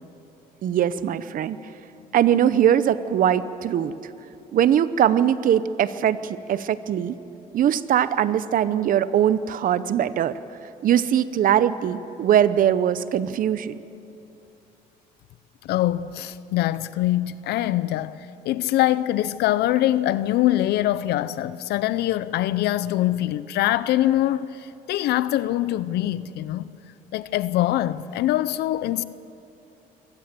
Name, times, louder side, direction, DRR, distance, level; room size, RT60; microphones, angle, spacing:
voice 1, 0.6-1.6 2.1-3.9 4.5-7.2 7.5-10.4 10.8-13.8, right 10 dB, 55° right, 0.8 m, -21 dB
voice 2, 15.6-26.7 27.1-29.0, left 14 dB, 75° left, 0.6 m, -23 dB
23.5 x 18.0 x 7.6 m
cardioid pair, 110°, 17 cm